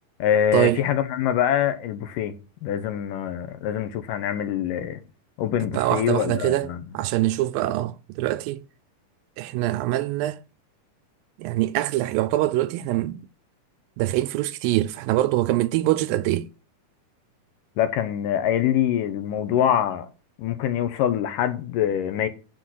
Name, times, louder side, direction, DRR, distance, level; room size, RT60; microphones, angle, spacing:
voice 1, 0.2-2.3 2.6-5.0 5.4-6.8 17.8-20.1 20.4-22.3, left 10 dB, 75° left, 2.4 m, -24 dB
voice 2, 5.7-6.7 6.9-8.6 9.4-10.4 11.4-13.2 14.0-16.5, right 15 dB, 80° right, 2.3 m, -24 dB
10.0 x 4.4 x 7.5 m
omnidirectional pair, 4.1 m